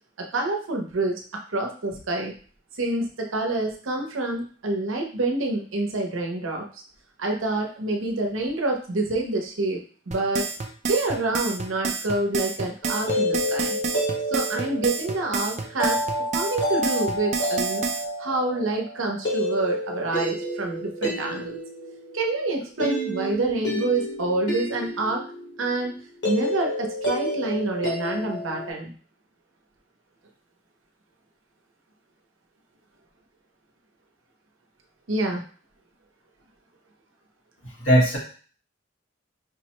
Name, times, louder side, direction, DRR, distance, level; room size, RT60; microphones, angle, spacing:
voice 1, 0.2-1.2 1.5-2.3 2.8-6.6 7.2-9.8 10.1-10.5 10.8-13.8 14.3-16.0 16.3-17.9 18.2-21.6 22.1-25.2 25.6-25.9 26.2-28.9 35.1-35.4, right 2 dB, 85° right, 2 dB, 0.8 m, -27 dB
sound 1, 10.1-18.0, right 5 dB, 35° right, 0.4 m, -29 dB
sound 2, 12.8-28.7, equal, 65° left, 1.2 m, -30 dB
voice 2, 37.6-38.2, equal, 85° left, -5 dB, 1.6 m, -19 dB
4.9 x 2.1 x 2.9 m, 0.42 s
head